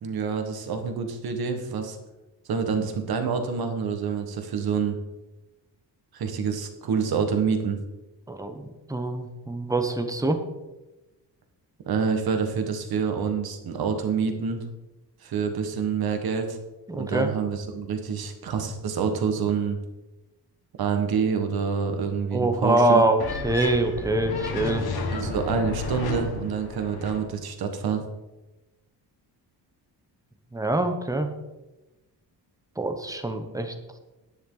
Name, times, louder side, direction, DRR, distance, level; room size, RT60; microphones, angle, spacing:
voice 1, 0.0-2.0 2.5-5.0 6.1-7.8 11.9-14.6 15.2-16.6 16.9-19.8 20.8-23.0 25.1-28.0, right 6 dB, 60° right, 6 dB, 1.6 m, -27 dB
voice 2, 8.3-10.4 16.9-17.3 22.3-24.9 30.5-31.3 32.8-33.7, right 2 dB, 10° right, 7 dB, 0.9 m, -24 dB
sound 1, 23.2-27.2, left 3 dB, 65° left, 1.8 m, -31 dB
10.0 x 10.0 x 3.9 m, 1.0 s
wide cardioid pair, 175°, 42 cm